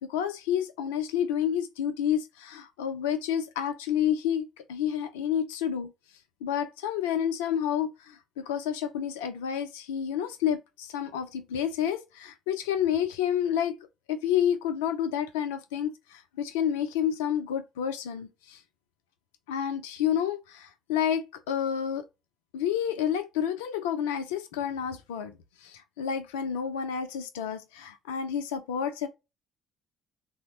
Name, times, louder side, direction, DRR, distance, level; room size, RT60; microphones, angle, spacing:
voice 1, 0.0-5.9 6.4-13.8 14.1-18.6 19.5-22.1 22.5-29.1, left 9 dB, 80° left, 0.4 m, -29 dB
3.3 x 2.0 x 2.8 m
hypercardioid pair, 50°, 0 cm